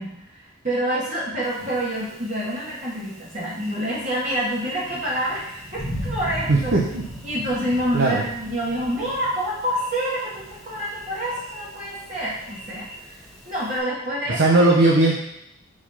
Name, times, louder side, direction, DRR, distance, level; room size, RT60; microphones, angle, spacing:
voice 1, 0.0-6.8 7.2-12.9 13.5-14.6, equal, 40° right, -7 dB, 1.8 m, -27 dB
Thunder, 1.4-13.8, equal, ahead, 1.3 m, -38 dB
voice 2, 6.5-7.0 7.9-8.2 14.3-15.2, right 2 dB, 60° right, -3 dB, 0.9 m, -18 dB
4.9 x 4.7 x 5.7 m, 0.79 s
head